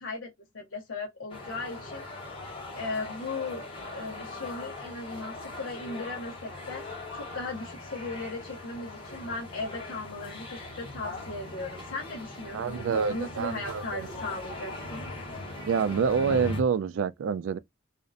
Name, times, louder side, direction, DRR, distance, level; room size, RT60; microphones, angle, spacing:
voice 1, 0.0-2.0 2.8-3.6 3.9-15.0, left 3 dB, 85° left, 0.7 m, -37 dB
sound 1, 1.3-16.6, left 2 dB, 25° left, 0.9 m, -40 dB
voice 2, 12.5-14.1 15.7-17.6, right 6 dB, 85° right, 0.3 m, -27 dB
2.5 x 2.0 x 2.5 m
head